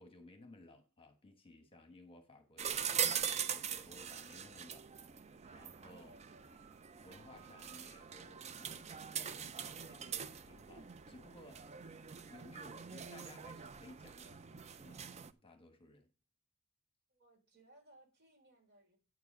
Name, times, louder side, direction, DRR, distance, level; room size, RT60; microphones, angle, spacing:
voice 1, 0.0-3.1 3.5-4.9 5.5-6.2 7.0-15.1 15.4-16.1, left 1 dB, 25° left, 1.2 m, -58 dB
sound 1, 2.6-15.3, right 8 dB, 30° right, 0.4 m, -42 dB
voice 2, 5.9-6.7 17.1-19.0, right 1 dB, 55° right, 3.6 m, -64 dB
9.4 x 4.7 x 6.2 m
head